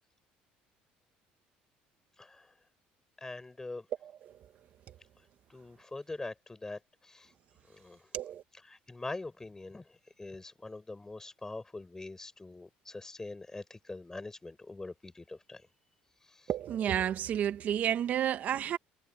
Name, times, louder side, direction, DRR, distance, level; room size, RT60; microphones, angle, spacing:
voice 1, 2.2-2.5 3.2-3.9 5.5-7.3 7.7-8.1 8.6-15.7 16.3-16.5, left 2 dB, 15° left, 6.6 m, -44 dB
voice 2, 16.5-18.8, right 10 dB, 55° right, 1.3 m, -30 dB
supercardioid pair, 90°, 3 cm